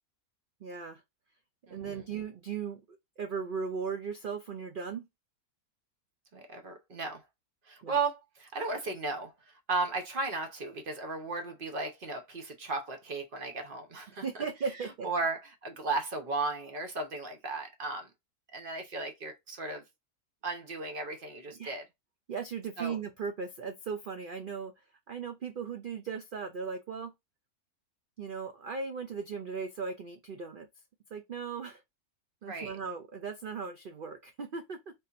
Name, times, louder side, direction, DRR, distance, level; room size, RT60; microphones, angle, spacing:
voice 1, 0.6-1.0 1.7-2.8 3.2-5.1 7.8-8.0 14.1-15.1 21.5-21.8 22.3-24.7 25.1-27.1 28.2-30.7 31.1-31.8 32.4-34.9, right 5 dB, 90° right, 0.4 m, -37 dB
voice 2, 1.7-2.0 6.3-7.2 7.7-14.2 15.0-18.1 18.5-19.8 20.4-21.9 22.8-23.0 32.4-32.8, right 3 dB, 45° right, 0.8 m, -35 dB
3.7 x 2.8 x 2.4 m
omnidirectional pair, 1.6 m